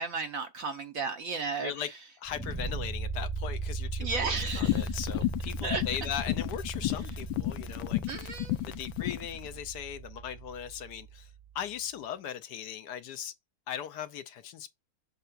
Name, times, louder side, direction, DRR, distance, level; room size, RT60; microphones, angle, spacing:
voice 1, 0.0-1.9 4.0-5.0 5.6-5.8 8.1-8.6, right 4 dB, 60° right, 1.0 m, -34 dB
voice 2, 2.2-4.1 4.5-8.0 8.7-13.3 13.7-14.7, left 9 dB, 70° left, 1.1 m, -38 dB
sound 1, 2.3-11.3, right 3 dB, 10° right, 0.5 m, -38 dB
sound 2, 4.4-9.3, left 18 dB, 90° left, 1.4 m, -32 dB
6.8 x 6.6 x 2.5 m
omnidirectional pair, 2.0 m